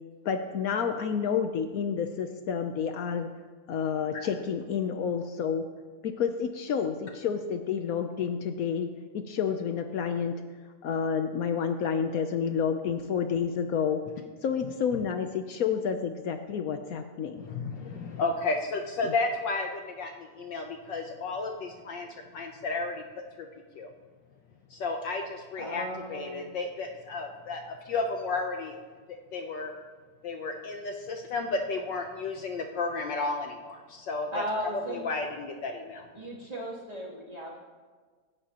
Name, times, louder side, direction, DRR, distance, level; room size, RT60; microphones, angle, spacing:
voice 1, 0.2-3.3 3.7-5.7 6.0-10.4 10.8-14.0 14.4-17.4 19.0-19.1, left 7 dB, 90° left, 7 dB, 0.7 m, -29 dB
voice 2, 17.4-22.1 22.3-23.0 23.4-23.5 23.7-23.9 24.7-28.7 29.3-29.7 30.2-34.4 34.9-36.0, left 3 dB, 65° left, 3 dB, 1.3 m, -33 dB
voice 3, 25.6-26.5 34.3-35.0 36.1-37.6, equal, 15° right, -5 dB, 2.8 m, -36 dB
25.0 x 11.0 x 2.9 m, 1.5 s
omnidirectional pair, 2.4 m